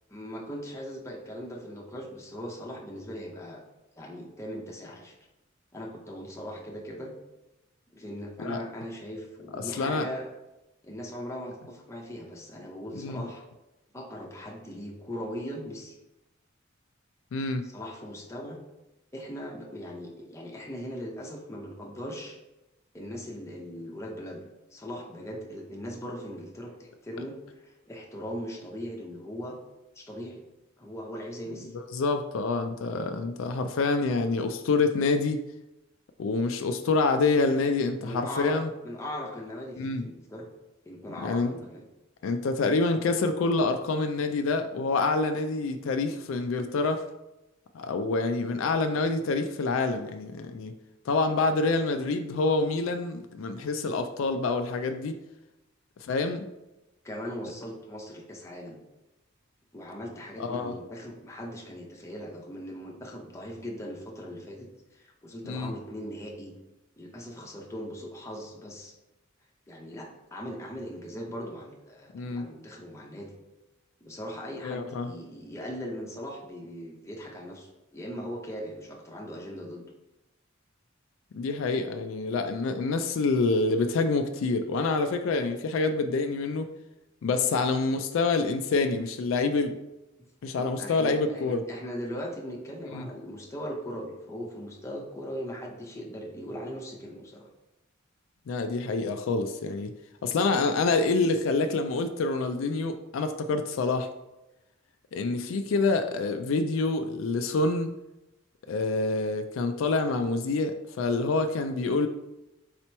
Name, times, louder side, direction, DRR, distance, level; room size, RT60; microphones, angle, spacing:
voice 1, 0.1-3.6 4.0-5.1 5.7-7.1 7.9-10.3 10.8-13.4 13.9-16.0 17.6-18.6 19.1-22.4 22.9-24.4 24.7-29.6 29.9-30.4 30.8-31.7 38.0-38.5 38.8-40.5 40.8-41.8 57.0-58.8 59.7-66.5 67.0-68.9 69.7-73.3 74.0-79.8 90.2-90.3 90.5-97.5 100.2-100.4 105.1-105.4, equal, 15° left, -1 dB, 0.7 m, -39 dB
voice 2, 17.3-17.7 31.7-35.4 36.2-38.7 39.8-40.0 41.2-41.5 42.2-47.0 47.7-50.7 51.1-55.2 56.0-56.5 60.4-60.7 65.4-65.7 72.1-72.5 74.6-75.1 81.3-86.7 87.2-89.7 90.4-91.6 92.9-93.1 98.5-99.9 100.2-104.1 105.1-107.9 108.7-112.1, left 3 dB, 70° left, 7 dB, 0.3 m, -27 dB
4.1 x 2.9 x 4.4 m, 0.96 s
head